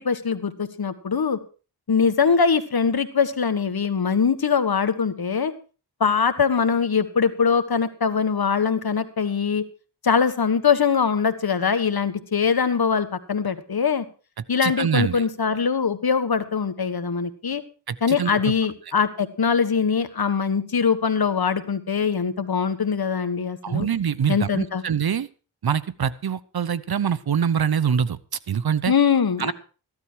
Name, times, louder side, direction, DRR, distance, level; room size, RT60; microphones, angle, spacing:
voice 1, 0.0-1.4 1.9-5.5 6.0-9.6 10.0-14.0 14.5-17.6 18.0-23.9 24.3-24.8 28.9-29.5, left 6 dB, 60° left, 10 dB, 1.6 m, -22 dB
voice 2, 14.6-15.2 17.9-18.4 23.6-25.3 25.6-28.2 28.5-28.9 29.4-29.5, right 7 dB, 65° right, 17 dB, 0.9 m, -24 dB
15.0 x 12.0 x 4.6 m, 0.37 s
cardioid pair, 60°, 41 cm